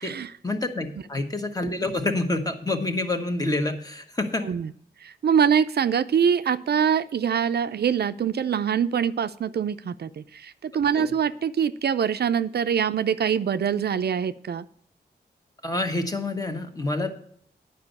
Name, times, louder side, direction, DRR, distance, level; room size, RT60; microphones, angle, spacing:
voice 1, 0.4-4.4 10.9-11.1 15.6-17.1, left 2 dB, 20° left, 5 dB, 1.4 m, -27 dB
voice 2, 5.0-14.7, right 7 dB, 70° right, 12 dB, 0.4 m, -24 dB
9.7 x 5.4 x 8.0 m, 0.62 s
wide cardioid pair, 105°, 17 cm